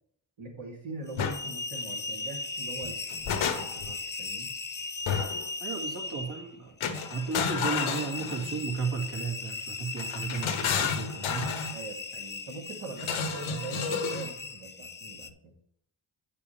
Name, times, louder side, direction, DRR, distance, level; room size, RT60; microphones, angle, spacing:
voice 1, 0.4-3.0 3.5-4.5 11.7-15.5, right 2 dB, 75° right, -3 dB, 3.4 m, -42 dB
sound 1, 1.1-15.3, left 3 dB, 20° left, 0.6 m, -38 dB
sound 2, 1.2-1.4 2.8-3.9 5.1-5.5 6.8-8.7 10.0-11.8 13.0-14.3, left 6 dB, 80° left, 1.0 m, -31 dB
voice 2, 5.6-6.7 7.1-11.5 13.4-13.6, right 5 dB, 55° right, -1 dB, 2.5 m, -34 dB
8.6 x 6.8 x 3.5 m, 0.67 s
supercardioid pair, 45°, 48 cm